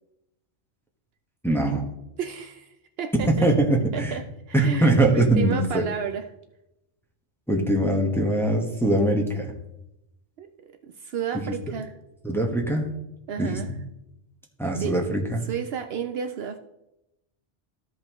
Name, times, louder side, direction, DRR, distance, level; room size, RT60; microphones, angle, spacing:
voice 1, 1.4-1.8 3.3-4.2 4.5-5.8 7.5-9.5 12.2-12.9 13.4-13.8 14.6-15.5, right 1 dB, ahead, 0 dB, 1.1 m, -22 dB
voice 2, 2.2-3.5 3.9-6.3 10.4-10.7 11.0-11.9 13.3-13.7 14.8-15.0 15.5-16.6, right 7 dB, 70° right, 7 dB, 0.8 m, -32 dB
14.0 x 5.3 x 3.0 m, 0.87 s
omnidirectional pair, 1.1 m